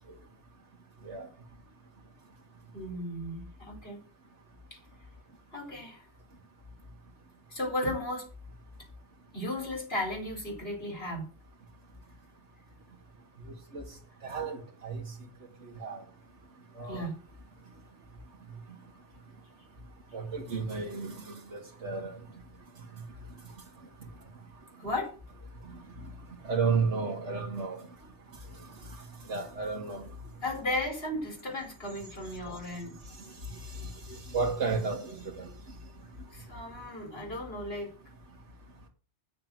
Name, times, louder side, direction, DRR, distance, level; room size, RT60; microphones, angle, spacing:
voice 1, 2.7-4.0 5.5-6.1 7.5-8.3 9.3-11.3 16.9-17.2 24.8-25.1 30.4-32.9 36.3-37.9, left 1 dB, 55° left, 4.7 m, -35 dB
voice 2, 14.2-15.0 15.8-16.0 16.8-17.1 20.1-22.2 26.4-27.8 29.3-30.0 33.8-35.5, right 4 dB, 75° right, 2.1 m, -32 dB
9.4 x 6.8 x 7.7 m
omnidirectional pair, 1.2 m